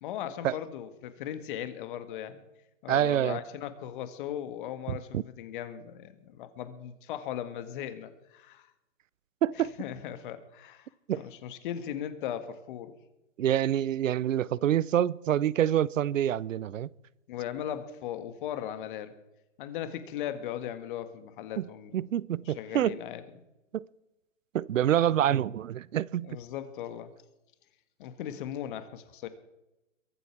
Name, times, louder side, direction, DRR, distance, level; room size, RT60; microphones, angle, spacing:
voice 1, 0.0-2.4 2.8-8.7 9.6-13.0 17.3-19.1 19.6-22.0 22.4-23.2 26.2-27.1 28.0-29.3, left 10 dB, 40° left, 1.7 m, -38 dB
voice 2, 2.9-3.4 4.9-5.2 9.4-9.7 11.1-11.2 13.4-16.9 21.6-21.7 21.9-23.0 23.7-23.8 24.5-26.4, right 11 dB, 80° right, 0.7 m, -27 dB
22.5 x 8.0 x 6.0 m
hypercardioid pair, 150°, 38 cm